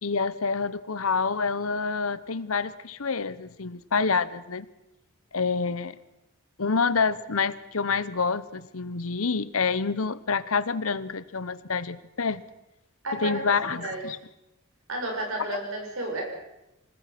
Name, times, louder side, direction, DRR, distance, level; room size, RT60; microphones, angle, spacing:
voice 1, 0.0-4.7 5.3-6.0 6.6-12.4 13.2-14.2, left 5 dB, 80° left, 16 dB, 1.0 m, -27 dB
voice 2, 13.0-14.0 14.9-16.3, right 1 dB, 80° right, 1 dB, 6.9 m, -32 dB
26.0 x 19.5 x 6.1 m, 0.91 s
head